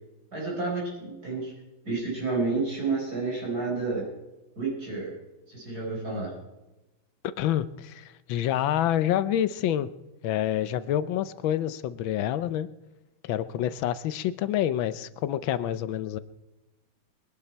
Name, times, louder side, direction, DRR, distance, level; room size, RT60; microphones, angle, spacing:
voice 1, 0.3-1.5 1.8-4.1 4.6-5.1 5.5-6.3, right 3 dB, 45° right, -4 dB, 5.1 m, -30 dB
voice 2, 7.2-9.9 10.2-12.7 13.2-16.2, left 11 dB, 75° left, 15 dB, 1.4 m, -27 dB
22.5 x 11.0 x 4.5 m, 1.0 s
omnidirectional pair, 2.3 m